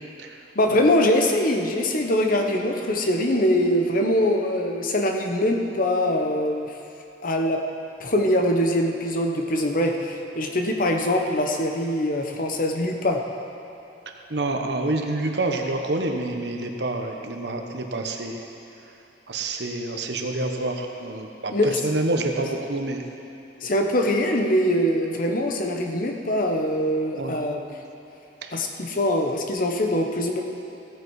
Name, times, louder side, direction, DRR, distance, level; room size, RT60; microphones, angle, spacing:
voice 1, 0.5-6.7 7.2-7.6 8.0-13.2 21.5-21.9 23.6-27.6 28.5-30.4, left 1 dB, 50° left, 3 dB, 1.0 m, -23 dB
voice 2, 14.3-18.4 19.3-23.0 27.1-27.4 28.4-28.6, right 2 dB, 70° right, 3 dB, 1.0 m, -27 dB
16.0 x 7.9 x 4.8 m, 2.7 s
head